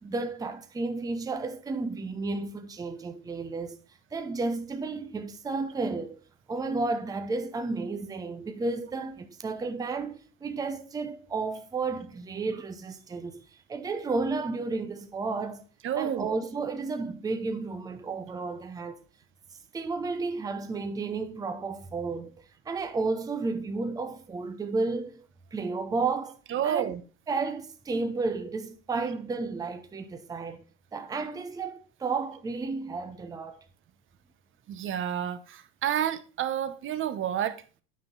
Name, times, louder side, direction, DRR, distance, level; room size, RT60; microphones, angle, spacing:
voice 1, 0.0-3.8 4.1-6.2 6.5-13.4 13.7-15.6 16.0-19.0 19.7-25.2 25.5-26.4 26.6-27.0 27.3-30.6 30.9-33.6, right 3 dB, 10° right, 0.7 m, -32 dB
voice 2, 15.8-16.4 26.5-27.0 28.9-29.1 34.7-37.6, right 10 dB, 30° right, 0.9 m, -30 dB
9.5 x 5.5 x 3.8 m
supercardioid pair, 115°, 39 cm